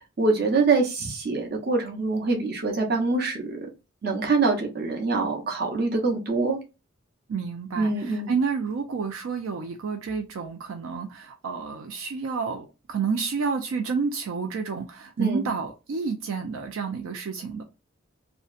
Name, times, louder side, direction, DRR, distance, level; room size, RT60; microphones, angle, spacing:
voice 1, 0.2-3.6 4.0-6.6 7.8-8.3 15.2-15.5, right 3 dB, 50° right, 0.7 m, -24 dB
voice 2, 7.3-17.6, right 5 dB, 80° right, 0.4 m, -30 dB
2.7 x 2.1 x 2.4 m
head